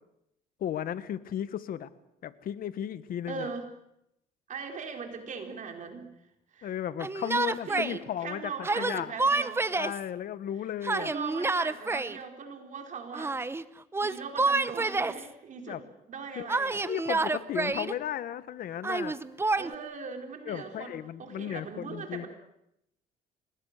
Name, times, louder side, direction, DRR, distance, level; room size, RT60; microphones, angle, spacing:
voice 1, 0.6-1.9 2.2-3.5 6.6-9.2 9.7-11.1 15.7-15.8 16.3-16.5 16.8-19.2 20.5-22.3, left 10 dB, 60° left, 14 dB, 1.4 m, -35 dB
voice 2, 3.3-3.7 4.5-6.1 6.5-6.7 7.3-9.6 10.9-13.5 14.0-16.9 19.5-22.3, right 5 dB, 45° right, 4 dB, 4.1 m, -40 dB
Yell, 7.0-8.0 8.6-10.0 10.8-12.2 13.1-13.6 13.9-15.3 16.5-17.9 18.8-19.7, right 3 dB, 15° right, 0.9 m, -28 dB
27.0 x 20.5 x 6.6 m, 0.80 s
cardioid pair, 110°, 17 cm